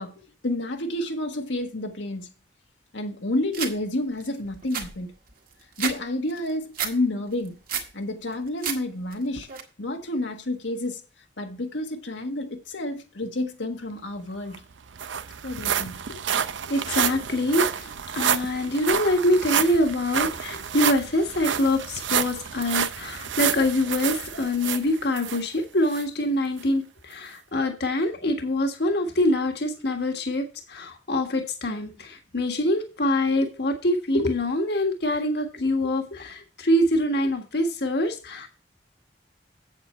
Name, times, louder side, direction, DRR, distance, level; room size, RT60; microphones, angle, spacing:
voice 1, 0.0-2.3 2.9-5.1 5.8-7.6 7.9-9.5 9.8-11.0 11.4-14.6 15.4-16.2, left 1 dB, 85° left, 1.5 m, -30 dB
sound 1, 3.5-3.7 4.2-4.3 4.5-6.0 6.3-6.9 7.3-7.9 8.3-8.8 9.1-9.6, right 7 dB, 50° right, 1.7 m, -31 dB
sound 2, 14.2-14.3 14.5-25.4 25.9-26.0 26.6-26.7, right 8 dB, 85° right, 0.6 m, -29 dB
voice 2, 16.7-38.5, left 1 dB, 60° left, 1.5 m, -25 dB
8.1 x 8.1 x 4.4 m
head